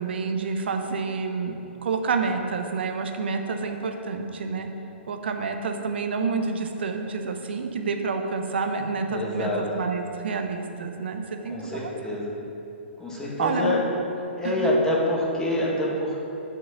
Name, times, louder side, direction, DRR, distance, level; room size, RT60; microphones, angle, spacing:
voice 1, 0.0-4.7 5.1-12.2 13.4-13.8 14.4-14.8, right 4 dB, 60° right, 4 dB, 0.9 m, -28 dB
voice 2, 9.1-9.6 11.5-12.3 13.0-13.8 14.4-16.2, left 1 dB, 10° left, -4 dB, 1.9 m, -26 dB
10.5 x 5.3 x 5.8 m, 3.0 s
figure-of-eight pair, 115°, 6 cm